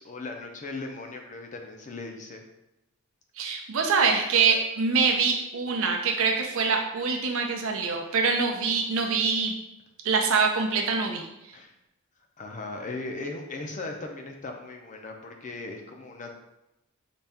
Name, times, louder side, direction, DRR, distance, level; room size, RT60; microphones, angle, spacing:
voice 1, 0.0-2.4 8.1-8.2 11.5-11.7 12.4-16.4, left 3 dB, 35° left, 3 dB, 0.5 m, -38 dB
voice 2, 3.4-9.6 10.0-11.2, right 5 dB, 65° right, 3 dB, 0.6 m, -24 dB
4.1 x 2.3 x 3.4 m, 0.89 s
head